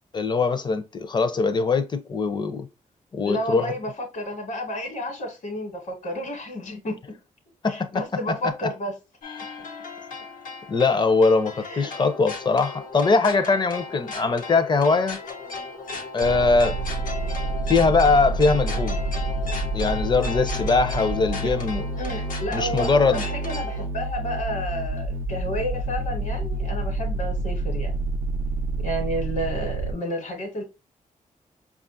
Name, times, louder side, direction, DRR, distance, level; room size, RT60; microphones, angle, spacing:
voice 1, 0.1-2.7 3.1-3.7 7.6-8.7 10.7-15.2 16.1-16.8 17.7-19.0 19.7-21.9 22.5-23.2, left 4 dB, 35° left, 0.6 m, -22 dB
voice 2, 3.2-7.0 7.7-8.9 11.6-11.9 21.4-21.5 22.0-27.9 28.8-30.6, equal, 65° left, 1.3 m, -31 dB
sound 1, 9.2-23.9, left 4 dB, 85° left, 1.0 m, -36 dB
sound 2, 16.2-29.9, right 2 dB, 90° right, 0.4 m, -28 dB
5.2 x 2.4 x 2.5 m
wide cardioid pair, 115°, 14 cm